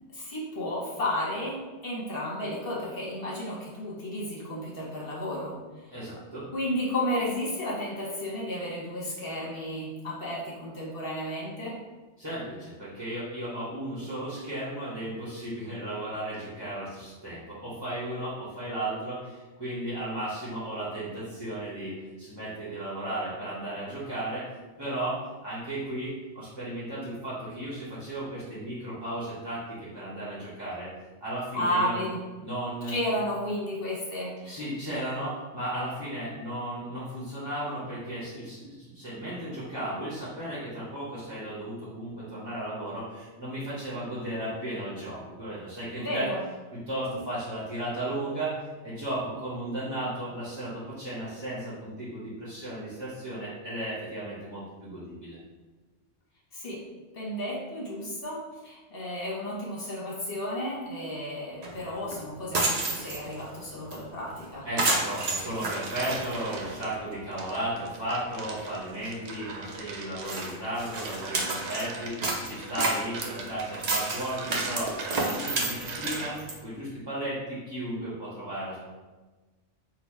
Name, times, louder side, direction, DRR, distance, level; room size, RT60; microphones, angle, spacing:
voice 1, 0.1-5.5 6.5-11.8 31.5-32.2 32.9-34.6 46.0-46.4 56.5-56.8 57.1-64.6, left 1 dB, 50° left, -6 dB, 1.4 m, -32 dB
voice 2, 5.9-6.5 12.2-30.9 31.2-32.0 32.4-32.9 34.4-46.3 46.7-48.6 48.8-55.4 64.6-78.8, right 1 dB, 20° right, -9 dB, 1.0 m, -35 dB
sound 1, 61.6-61.7 62.1-62.2 62.4-63.4 63.9-64.0 64.3-64.4 64.8-66.9 67.3-67.4 68.0-68.1 68.3-68.6 69.0-69.1 69.7-69.8 70.2-71.9 72.2-76.6, right 2 dB, 45° right, 0.6 m, -30 dB
sound 2, 65.3-66.9 67.4-76.6, right 3 dB, 70° right, 0.9 m, -40 dB
4.0 x 2.4 x 4.5 m, 1.3 s
omnidirectional pair, 1.3 m